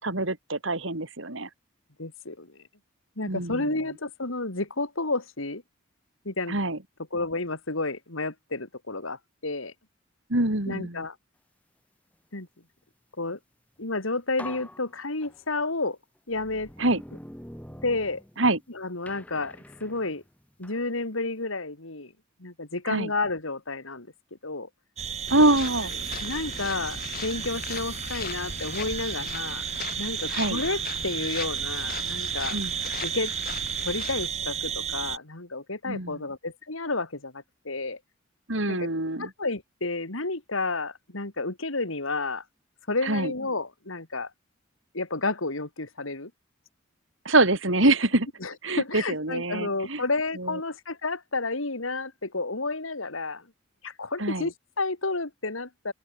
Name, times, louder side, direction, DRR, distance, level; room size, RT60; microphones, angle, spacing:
voice 1, 0.0-1.5 3.3-3.7 6.5-6.8 10.3-11.0 16.8-17.0 18.4-18.6 22.9-23.1 25.3-25.9 30.3-30.6 32.5-32.8 35.9-36.3 38.5-39.3 43.0-43.3 47.3-48.3 48.6-50.0 50.4-50.6 54.2-54.5, right 2 dB, 70° right, 3.7 m, -25 dB
voice 2, 2.0-2.6 3.2-5.6 6.2-6.6 7.1-9.7 10.7-11.1 12.3-12.5 13.2-13.4 13.8-16.0 16.3-16.7 17.8-18.2 18.7-20.2 20.6-22.1 22.4-24.1 24.4-24.7 26.2-29.6 30.0-32.6 33.0-33.3 33.8-38.0 38.7-38.9 39.2-42.4 42.9-44.3 44.9-46.3 48.4-53.4 53.8-55.9, left 3 dB, 85° left, 3.2 m, -31 dB
sound 1, 13.8-13.9 14.4-15.7 16.3-18.6 19.1-20.9, left 1 dB, 5° left, 5.6 m, -45 dB
sound 2, 25.0-35.2, right 8 dB, 35° right, 1.9 m, -33 dB
sound 3, 25.3-34.3, left 5 dB, 45° left, 4.9 m, -39 dB
head